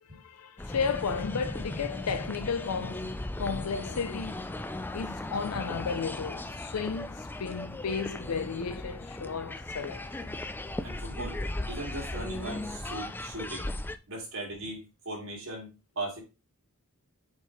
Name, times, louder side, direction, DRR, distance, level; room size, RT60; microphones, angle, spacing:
voice 1, 0.0-4.5 4.9-10.4, left 5 dB, 85° left, 0.5 m, -34 dB
sound 1, 0.6-14.0, left 1 dB, 10° left, 0.3 m, -37 dB
voice 2, 10.8-11.4 11.7-13.7 14.1-16.2, right 2 dB, 60° right, 2.9 m, -38 dB
6.9 x 4.6 x 3.3 m
head